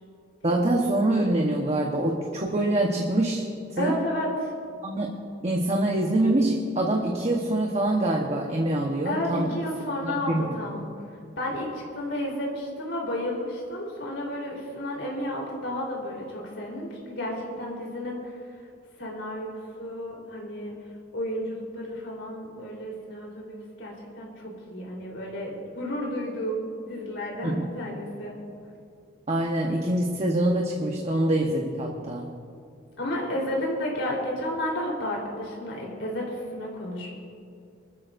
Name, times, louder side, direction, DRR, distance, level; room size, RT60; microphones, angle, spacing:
voice 1, 0.4-4.0 4.8-9.6 10.0-10.6 27.4-27.7 29.3-32.3, right 1 dB, 35° right, 0 dB, 1.1 m, -25 dB
voice 2, 3.8-4.3 9.0-10.9 11.4-11.7 11.9-18.3 19.0-20.7 21.1-28.4 33.0-37.2, left 1 dB, 75° left, -3 dB, 3.9 m, -32 dB
26.5 x 13.5 x 2.6 m, 2.4 s
head